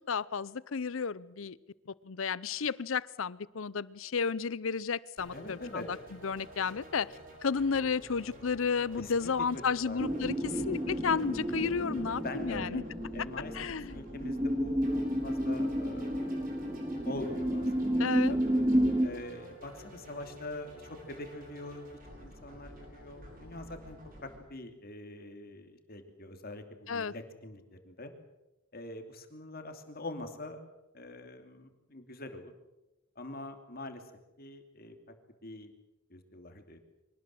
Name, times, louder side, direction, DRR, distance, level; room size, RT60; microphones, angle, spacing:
voice 1, 0.1-1.6 1.9-6.0 6.2-7.1 7.4-12.8 13.5-13.9 18.0-18.3 26.9-27.1, left 5 dB, 80° left, 20 dB, 0.7 m, -32 dB
sound 1, 5.2-24.4, equal, 45° right, 7.9 m, -51 dB
voice 2, 5.3-5.8 9.0-10.0 10.8-10.9 12.2-13.5 13.9-14.9 15.2-16.5 17.0-18.4 19.0-20.7 21.1-21.9 22.2-28.1 28.7-30.6 30.9-32.5 33.2-34.0 34.4-34.9 35.4-35.7 36.1-36.8, left 2 dB, 50° left, 6 dB, 2.9 m, -44 dB
sound 2, 10.0-19.1, equal, 20° right, 1.8 m, -31 dB
24.5 x 18.5 x 7.7 m, 0.99 s
head